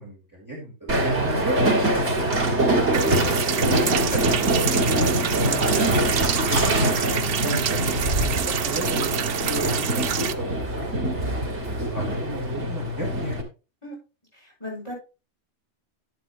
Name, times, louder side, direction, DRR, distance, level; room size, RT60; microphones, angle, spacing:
voice 1, 0.0-2.0 2.4-9.9 10.2-13.4, right 2 dB, 15° right, -3 dB, 3.2 m, -34 dB
Train, 0.9-13.4, right 1 dB, 80° right, 2.6 m, -24 dB
sound 1, 2.9-10.3, right 9 dB, 60° right, 0.8 m, -28 dB
voice 2, 14.3-14.9, left 1 dB, 25° left, -5 dB, 5.8 m, -36 dB
11.5 x 7.9 x 3.1 m, 0.30 s
omnidirectional pair, 1.2 m